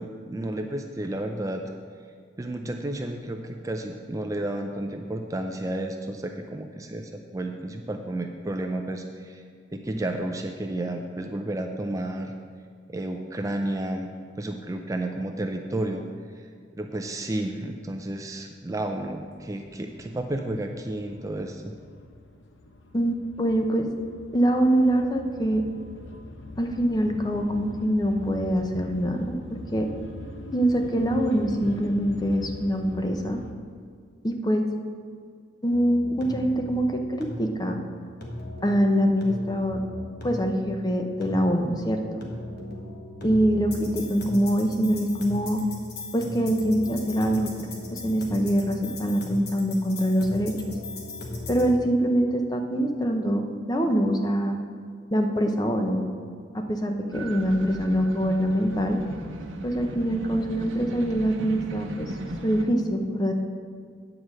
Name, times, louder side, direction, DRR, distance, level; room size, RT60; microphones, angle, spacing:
voice 1, 0.0-1.6 2.4-9.4 9.7-12.3 12.9-16.0 16.4-16.5 16.7-21.8, right 1 dB, 15° right, 4 dB, 0.4 m, -32 dB
sound 1, 19.1-33.5, left 2 dB, 70° left, 0.8 m, -42 dB
voice 2, 22.9-23.9 24.3-25.6 26.6-29.9 30.5-33.4 34.2-34.6 35.6-37.8 38.6-39.8 40.2-42.2 43.2-45.6 46.1-47.5 47.9-50.7 51.5-54.6 55.1-56.1 56.5-59.0 59.6-62.1 62.4-63.3, equal, 20° left, 4 dB, 0.7 m, -24 dB
sound 2, 35.7-51.7, left 2 dB, 55° left, 1.5 m, -38 dB
sound 3, 57.1-62.6, right 1 dB, 90° right, 0.9 m, -37 dB
9.4 x 4.8 x 7.5 m, 2.1 s
head